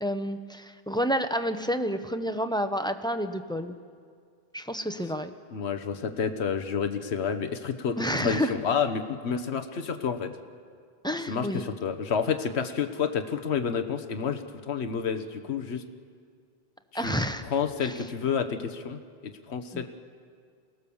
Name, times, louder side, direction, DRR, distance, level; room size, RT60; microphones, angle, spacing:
voice 1, 0.0-3.8 4.5-5.3 8.0-8.6 11.0-11.6 16.9-17.4 17.8-17.9 19.7-19.8, equal, 5° left, 8 dB, 0.8 m, -29 dB
voice 2, 5.5-10.3 11.3-15.8 16.9-17.2 17.4-19.0 19.5-19.8, left 6 dB, 85° left, 8 dB, 1.3 m, -29 dB
28.0 x 19.0 x 7.1 m, 2.1 s
omnidirectional pair, 1.1 m